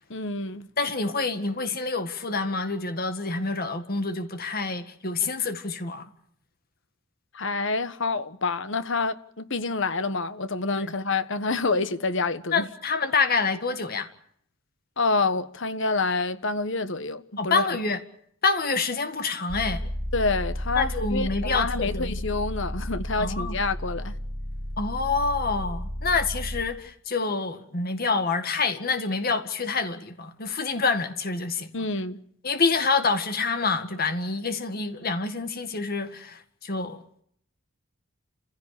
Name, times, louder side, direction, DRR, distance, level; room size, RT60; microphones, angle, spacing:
voice 1, 0.1-0.7 7.3-12.7 15.0-17.6 20.1-24.1 31.7-32.2, left 3 dB, 60° left, 1.3 m, -27 dB
voice 2, 0.8-6.1 10.8-10.9 12.5-14.1 17.4-18.0 18.4-19.9 20.7-22.2 23.2-23.6 24.8-31.7 32.4-37.0, left 4 dB, 45° left, 2.0 m, -27 dB
sound 1, 19.5-26.6, equal, 15° right, 1.8 m, -32 dB
29.5 x 16.0 x 8.5 m
head